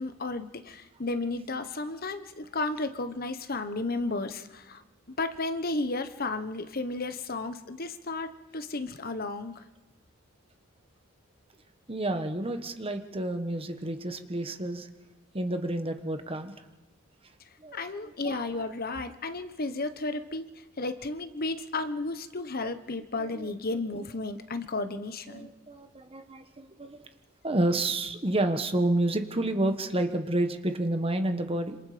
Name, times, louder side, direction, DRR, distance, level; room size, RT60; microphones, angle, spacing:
voice 1, 0.0-4.8 5.2-9.6 17.7-25.5, left 2 dB, 45° left, 9 dB, 1.2 m, -33 dB
voice 2, 11.9-14.9 15.3-16.5 17.6-17.8 18.2-18.6 23.2-23.8 25.3-27.1 27.4-31.8, right 1 dB, 25° right, 7 dB, 1.4 m, -30 dB
26.5 x 26.5 x 5.1 m, 1.2 s
head